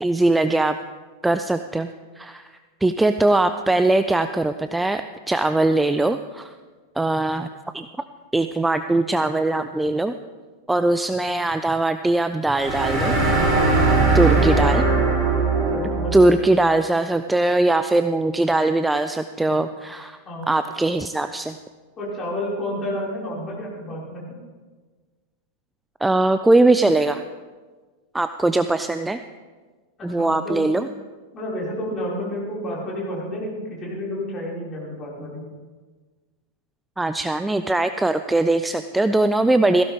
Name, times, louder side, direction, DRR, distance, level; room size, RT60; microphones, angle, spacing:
voice 1, 0.0-0.8 1.2-1.9 2.2-2.5 2.8-5.0 5.3-6.5 7.0-7.9 8.3-10.1 10.7-13.2 14.1-14.8 16.1-20.2 20.5-21.5 26.0-27.2 28.1-29.2 30.0-30.9 37.0-39.8, right 2 dB, 5° right, 10 dB, 0.4 m, -20 dB
sound 1, 12.5-16.3, right 3 dB, 25° right, 4.7 m, -19 dB
voice 2, 14.1-14.9 15.7-16.3 19.4-19.5 20.3-20.5 22.0-24.3 30.0-30.7 31.3-35.4, equal, 25° left, -6 dB, 5.7 m, -30 dB
17.5 x 15.5 x 3.7 m, 1.4 s
figure-of-eight pair, 90°, 0 cm